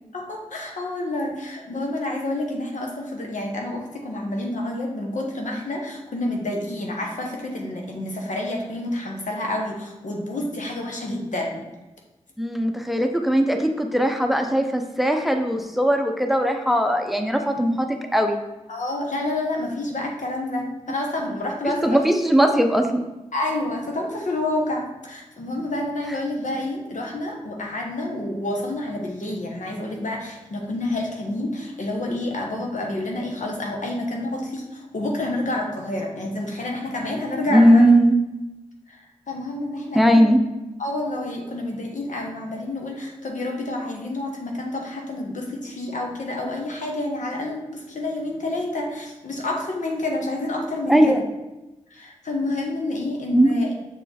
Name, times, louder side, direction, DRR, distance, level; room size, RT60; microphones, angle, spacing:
voice 1, 0.1-11.7 18.7-22.0 23.3-37.8 38.9-40.2 40.8-51.2 51.9-53.7, left 1 dB, 80° left, 0 dB, 1.2 m, -29 dB
voice 2, 12.4-17.9 18.1-18.4 21.8-23.0 37.5-38.1 39.9-40.4 50.9-51.2 53.3-53.6, equal, ahead, 5 dB, 0.7 m, -19 dB
6.5 x 3.6 x 4.2 m, 1.0 s
cardioid pair, 45°, 13 cm